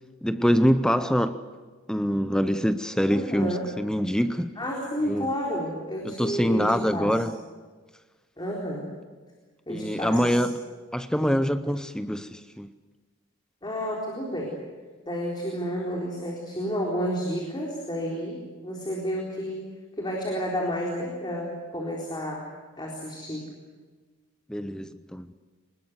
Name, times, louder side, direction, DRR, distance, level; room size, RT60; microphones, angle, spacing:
voice 1, 0.2-1.4 1.9-4.5 5.1-5.3 6.0-7.4 9.7-10.6 10.9-12.7 24.5-25.3, equal, 5° left, 0.7 m, -25 dB
voice 2, 3.1-3.7 4.6-7.2 8.4-8.9 9.7-10.4 13.6-14.6 15.0-18.4 18.6-19.7 20.0-22.4 22.8-23.5, equal, 20° left, 4.0 m, -31 dB
24.5 x 20.5 x 8.0 m
head